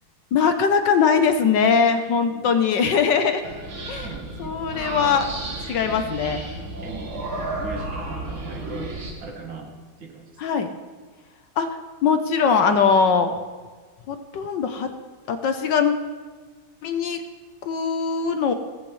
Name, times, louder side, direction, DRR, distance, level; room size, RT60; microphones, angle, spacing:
voice 1, 0.3-3.4 3.9-4.1 4.4-5.3 5.7-6.4 10.4-10.7 11.6-13.3 14.1-14.9 15.3-15.9 16.8-17.2 17.6-18.5, left 6 dB, 65° left, 7 dB, 1.3 m, -21 dB
voice 2, 2.3-2.6 4.0-5.4 5.8-6.1 6.8-9.7 10.0-10.3, right 3 dB, 65° right, 1 dB, 2.4 m, -40 dB
sound 1, 3.4-9.1, right 2 dB, 85° right, 2.9 m, -33 dB
16.5 x 14.5 x 3.2 m, 1.4 s
omnidirectional pair, 2.3 m